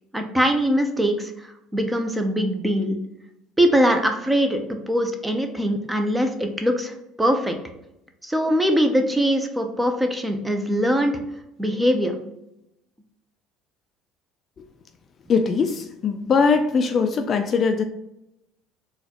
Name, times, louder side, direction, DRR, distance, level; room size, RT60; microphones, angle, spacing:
voice 1, 0.1-3.0 3.6-6.9 7.2-7.5 8.2-11.2 11.6-12.2, equal, 10° right, 5 dB, 0.6 m, -22 dB
voice 2, 15.3-17.8, left 5 dB, 40° left, 7 dB, 0.3 m, -21 dB
4.0 x 2.4 x 2.8 m, 0.84 s
supercardioid pair, 95°, 0 cm